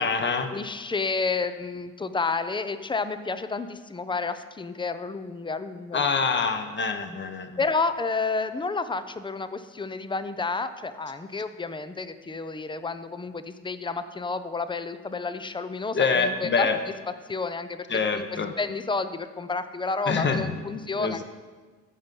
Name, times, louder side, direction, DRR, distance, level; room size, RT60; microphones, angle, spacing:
voice 1, 0.0-0.5 5.9-7.6 15.9-16.8 17.9-18.5 20.1-20.5 21.0-21.2, left 5 dB, 30° left, 7 dB, 1.2 m, -25 dB
voice 2, 0.5-6.1 7.6-16.7 17.3-17.9 18.1-18.3 18.6-21.2, left 4 dB, 15° left, 12 dB, 0.6 m, -30 dB
14.0 x 5.3 x 5.4 m, 1.4 s
hypercardioid pair, 70°, 38 cm